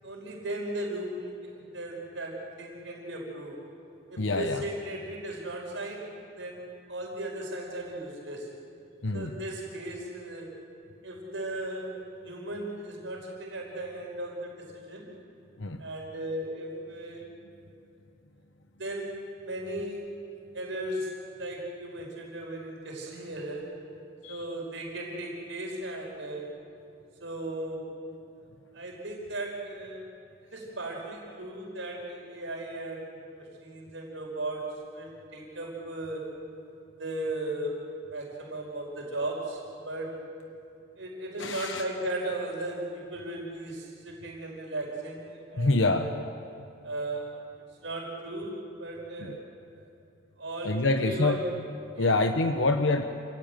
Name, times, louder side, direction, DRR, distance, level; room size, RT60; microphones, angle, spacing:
voice 1, 0.0-3.6 4.1-8.5 9.1-10.5 11.0-12.0 12.2-15.1 15.8-17.2 18.8-20.0 20.5-23.7 24.3-26.6 27.2-27.9 28.7-30.0 30.5-36.3 37.0-40.2 41.0-46.1 46.8-47.3 47.8-49.4 49.8-49.9 50.4-51.5 51.9-52.2, right 1 dB, 75° right, -1 dB, 5.1 m, -36 dB
voice 2, 4.2-4.6 9.0-9.3 15.6-15.8 24.2-24.4 41.4-41.8 45.6-46.1 49.2-49.4 50.6-51.4 51.9-53.0, left 2 dB, 75° left, 6 dB, 1.0 m, -26 dB
28.5 x 17.0 x 9.2 m, 2.5 s
head